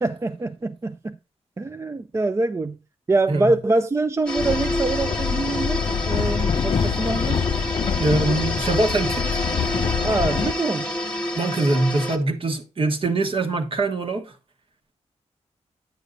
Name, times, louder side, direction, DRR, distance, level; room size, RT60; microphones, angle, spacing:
voice 1, 0.0-1.2 1.6-2.8 3.1-7.5 10.0-11.0, right 2 dB, 25° right, 0.4 m, -24 dB
sound 1, 4.3-12.2, left 1 dB, 10° left, 1.4 m, -29 dB
Train, 4.4-10.5, left 6 dB, 50° left, 0.5 m, -25 dB
voice 2, 8.0-9.4 11.3-14.3, right 2 dB, 50° right, 1.3 m, -23 dB
9.4 x 8.1 x 2.5 m
wide cardioid pair, 90°, 11 cm